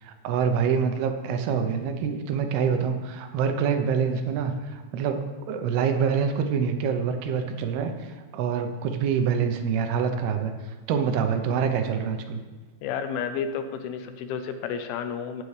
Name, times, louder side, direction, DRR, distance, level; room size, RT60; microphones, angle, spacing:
voice 1, 0.0-10.5 10.9-12.4, right 6 dB, 85° right, 6 dB, 2.9 m, -26 dB
voice 2, 12.8-15.4, left 7 dB, 80° left, 8 dB, 2.6 m, -31 dB
16.0 x 6.7 x 3.3 m, 1.4 s
omnidirectional pair, 4.5 m